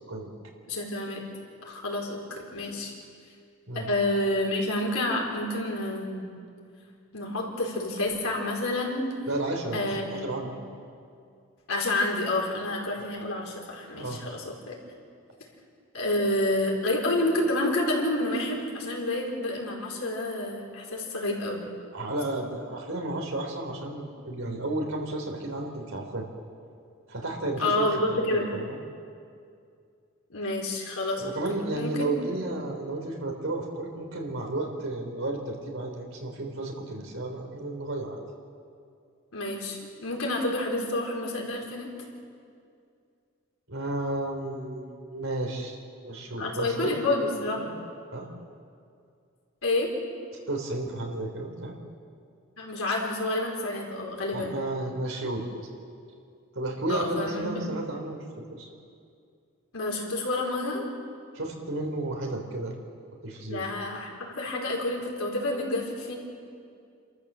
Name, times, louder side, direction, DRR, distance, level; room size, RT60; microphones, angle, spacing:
voice 1, 0.7-1.2 1.6-2.9 3.7-6.3 7.1-9.1 9.7-10.6 11.7-14.8 15.9-21.6 27.6-28.5 30.3-31.3 31.7-32.1 39.3-41.9 46.4-47.6 49.6-49.9 52.6-54.6 56.9-57.7 59.7-60.8 63.5-66.1, left 2 dB, 85° left, -2 dB, 4.5 m, -29 dB
voice 2, 9.3-10.5 13.9-14.2 21.9-26.3 27.1-28.8 31.2-38.2 43.7-45.8 46.0-46.8 47.1-47.2 47.5-47.7 48.1-48.3 50.5-51.7 54.3-55.4 56.5-58.2 58.5-58.7 61.3-62.7 63.2-63.6, right 2 dB, 75° right, 2 dB, 3.7 m, -32 dB
29.0 x 13.5 x 7.5 m, 2.3 s
head